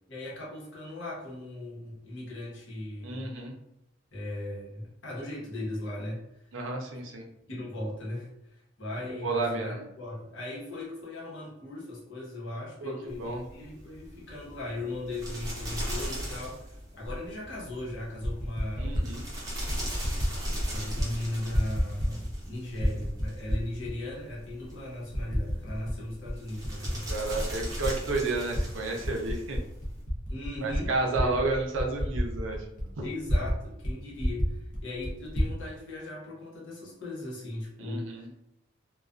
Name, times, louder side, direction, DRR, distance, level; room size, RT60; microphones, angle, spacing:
voice 1, 0.1-3.3 4.1-6.2 7.5-19.1 20.7-27.1 30.3-30.9 31.2-31.6 33.0-38.4, left 1 dB, 70° left, -4 dB, 0.9 m, -38 dB
voice 2, 3.0-3.5 6.5-7.2 9.2-9.8 12.8-12.9 13.2-13.4 18.8-19.2 27.1-29.6 30.6-32.9 37.8-38.3, right 3 dB, 80° right, 1 dB, 0.5 m, -31 dB
sound 1, 13.1-30.0, equal, 20° right, 0.7 m, -39 dB
Typing, 17.1-17.2 18.0-19.1 19.7-20.3 20.6-21.1 21.4-22.4 22.7-23.9 24.5-24.6 25.1-26.0 26.3-28.6 29.0-33.6 33.8-33.9 34.2-35.5, equal, 45° left, 0.6 m, -30 dB
2.3 x 2.2 x 2.4 m, 0.84 s
head